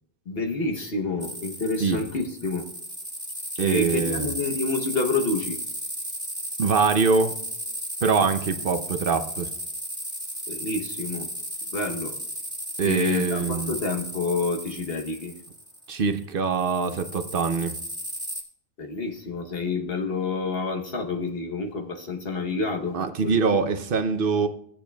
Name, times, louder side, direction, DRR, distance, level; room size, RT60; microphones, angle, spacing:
voice 1, 0.3-2.6 3.6-5.6 10.5-11.3 11.7-12.1 12.8-15.3 18.8-23.0 23.2-23.4, left 3 dB, 60° left, 2 dB, 1.2 m, -28 dB
sound 1, 1.2-16.2 16.5-18.4, equal, 5° right, 1.5 m, -34 dB
voice 2, 3.6-4.3 6.6-7.4 8.0-9.5 12.8-13.8 15.9-17.8 22.9-24.5, right 5 dB, 60° right, 8 dB, 0.9 m, -24 dB
17.0 x 8.7 x 2.3 m, 0.71 s
omnidirectional pair, 1.1 m